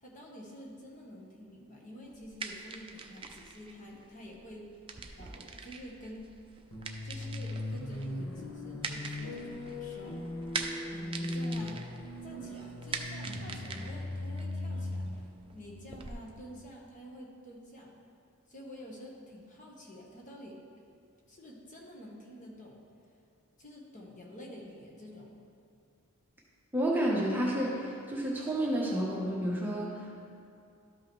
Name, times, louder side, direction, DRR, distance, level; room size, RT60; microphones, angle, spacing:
voice 1, 0.0-4.7 5.2-6.3 7.0-10.2 10.9-11.8 12.2-15.3 15.5-17.9 18.5-20.6 21.3-22.8 23.6-25.4, equal, 35° left, -2 dB, 1.1 m, -48 dB
sound 1, 2.1-16.1, right 4 dB, 25° right, 0.4 m, -44 dB
sound 2, 6.7-16.6, left 1 dB, 65° left, 1.2 m, -39 dB
voice 2, 26.7-30.2, right 1 dB, 10° right, -4 dB, 0.9 m, -30 dB
12.5 x 5.5 x 3.1 m, 2.5 s
head